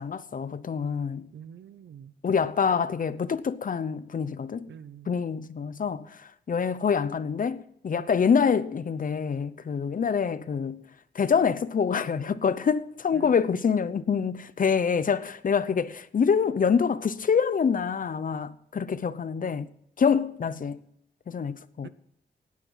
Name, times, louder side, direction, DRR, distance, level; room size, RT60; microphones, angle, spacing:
voice 1, 0.0-1.3 2.2-4.7 5.1-6.1 6.5-10.8 11.1-19.7 20.0-20.8 21.3-21.9, left 6 dB, 50° left, 0.8 m, -26 dB
voice 2, 1.3-2.1 4.7-5.1 13.1-13.6 21.8-21.9, right 9 dB, 90° right, 0.9 m, -46 dB
17.5 x 9.8 x 5.7 m
wide cardioid pair, 135°, 18 cm